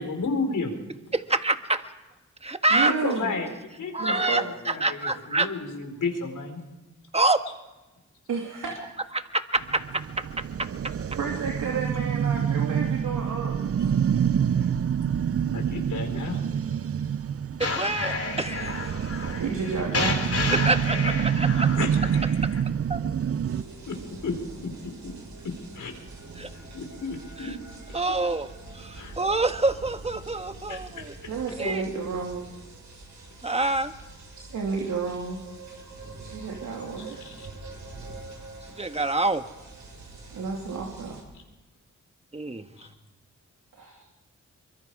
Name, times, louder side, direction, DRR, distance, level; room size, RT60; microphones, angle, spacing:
voice 1, 0.0-0.7 2.8-3.5 3.8-6.6 14.6-14.7 15.5-16.8 21.8-22.0 23.9-24.0 24.2-24.4 24.6-24.7 25.0-25.1 25.4-25.9 26.7-27.5 28.9-29.2 30.7-31.3 37.0-37.5 41.3-41.4 42.8-42.9, left 4 dB, 80° left, 4 dB, 4.7 m, -32 dB
voice 2, 1.4-1.8 2.4-2.9 3.9-5.5 7.1-7.4 9.1-10.0 17.6-18.9 20.5-21.7 22.9-23.0 26.4-26.5 27.9-28.5 28.7-31.1 31.6-31.8 33.4-33.9 38.8-39.4 42.3-42.7, right 2 dB, 20° right, 8 dB, 1.5 m, -26 dB
voice 3, 2.7-3.3 4.0-4.4 8.3-8.9 11.2-13.6 19.3-20.2 31.3-32.5 34.4-35.4 36.2-37.2 40.3-41.2 43.8-44.0, right 5 dB, 85° right, -1 dB, 2.9 m, -31 dB
sound 1, 9.6-23.6, right 8 dB, 50° right, 0.6 m, -27 dB
sound 2, 17.6-22.6, left 4 dB, 50° left, 3.5 m, -31 dB
sound 3, 23.5-41.2, right 3 dB, 70° right, 7.7 m, -44 dB
24.5 x 23.0 x 4.9 m, 1.1 s
cardioid pair, 60°, 30 cm